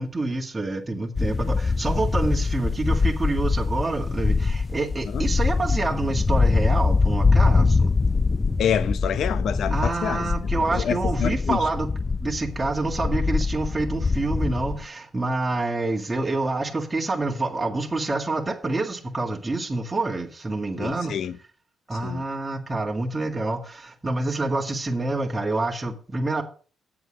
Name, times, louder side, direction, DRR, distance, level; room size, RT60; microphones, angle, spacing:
voice 1, 0.0-7.9 9.7-11.9 12.2-21.1 21.9-26.4, right 2 dB, 20° right, 1.9 m, -27 dB
sound 1, 1.2-14.8, left 4 dB, 25° left, 0.4 m, -23 dB
voice 2, 8.6-10.3 10.7-11.6 20.8-21.4 21.9-22.2, left 8 dB, 65° left, 0.7 m, -27 dB
7.8 x 7.4 x 6.4 m
cardioid pair, 90°, 0 cm